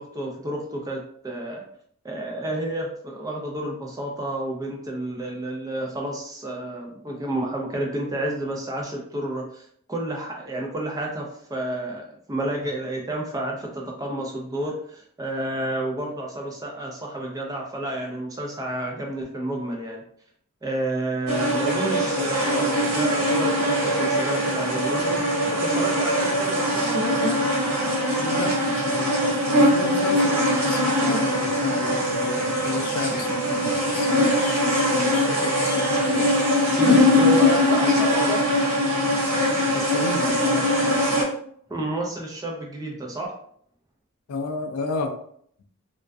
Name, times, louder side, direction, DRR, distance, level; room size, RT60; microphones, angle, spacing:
voice 1, 0.0-1.6 2.0-20.0 20.6-25.2 25.5-26.9 36.8-38.4 41.7-43.3, right 1 dB, 15° right, 0 dB, 0.3 m, -30 dB
sound 1, 21.3-41.2, left 1 dB, 80° right, 0.9 m, -22 dB
voice 2, 28.2-36.3 37.1-37.3 39.7-41.2 44.3-45.1, left 3 dB, 75° left, 5 dB, 0.4 m, -32 dB
2.3 x 2.1 x 2.4 m, 0.64 s
head